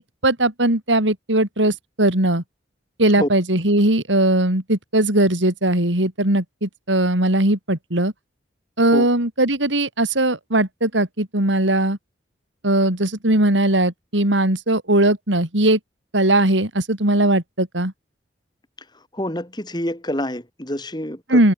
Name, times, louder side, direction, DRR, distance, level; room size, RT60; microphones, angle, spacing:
voice 1, 0.2-2.4 3.0-8.1 8.8-12.0 12.6-15.8 16.1-17.9 21.3-21.5, right 1 dB, 85° right, 4.7 m, -19 dB
voice 2, 19.1-21.4, left 1 dB, 25° left, 3.7 m, -27 dB
head